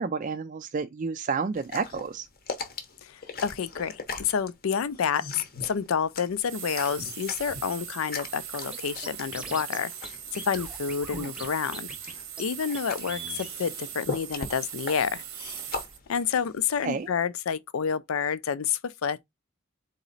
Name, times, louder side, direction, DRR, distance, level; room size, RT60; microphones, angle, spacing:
voice 1, 0.0-2.3 11.1-11.3 16.8-17.1, right 5 dB, 40° right, 0.3 m, -30 dB
sound 1, 1.5-17.1, left 4 dB, 45° left, 0.8 m, -40 dB
voice 2, 3.0-15.2 16.1-19.2, left 7 dB, 85° left, 0.5 m, -29 dB
sound 2, 6.4-16.0, right 10 dB, 80° right, 0.9 m, -40 dB
Scratching (performance technique), 8.7-8.8 9.0-9.8 10.0-10.1 10.4-11.5 11.7-12.1 12.4-12.5 12.7-12.8 13.1-13.5, right 3 dB, 5° right, 0.8 m, -40 dB
4.1 x 3.0 x 3.9 m
head